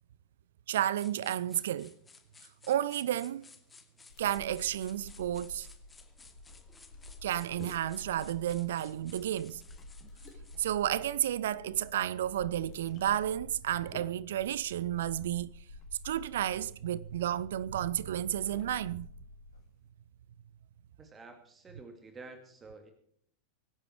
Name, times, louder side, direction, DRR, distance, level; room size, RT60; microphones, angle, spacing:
voice 1, 0.7-1.9 2.7-3.5 4.2-5.7 7.2-9.6 10.6-15.5 16.0-19.1, right 11 dB, 60° right, 0.5 m, -32 dB
sound 1, 1.0-10.7, left 4 dB, 15° left, 2.4 m, -58 dB
sound 2, 3.4-19.9, left 5 dB, 30° left, 3.7 m, -59 dB
sound 3, 4.1-19.6, left 2 dB, 80° left, 6.7 m, -51 dB
voice 2, 21.0-22.9, right 3 dB, 20° right, 2.4 m, -50 dB
24.5 x 10.0 x 4.7 m
figure-of-eight pair, 90°, 0 cm